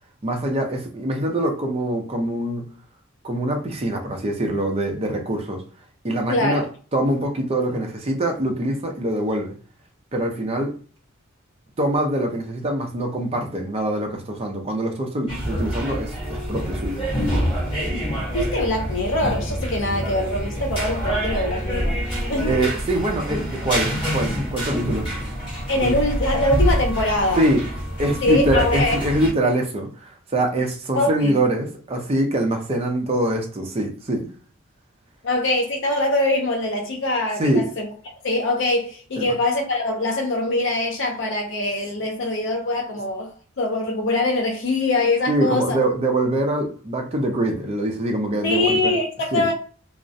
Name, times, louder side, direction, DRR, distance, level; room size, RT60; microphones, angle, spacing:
voice 1, 0.2-2.7 3.2-5.6 6.0-6.6 6.9-9.5 10.1-10.7 11.8-17.0 22.4-25.1 25.8-26.0 27.4-27.6 28.0-34.3 37.4-37.7 39.2-39.3 45.3-48.9 49.3-49.5, right 1 dB, 30° right, 0.4 m, -24 dB
voice 2, 6.3-6.7 18.3-22.0 22.3-22.6 25.7-27.4 28.2-29.0 31.0-31.4 35.2-37.9 38.2-45.8 48.4-49.5, left 2 dB, 60° left, 0.5 m, -23 dB
sound 1, 15.3-29.3, equal, 25° left, 1.0 m, -26 dB
2.4 x 2.0 x 2.6 m
head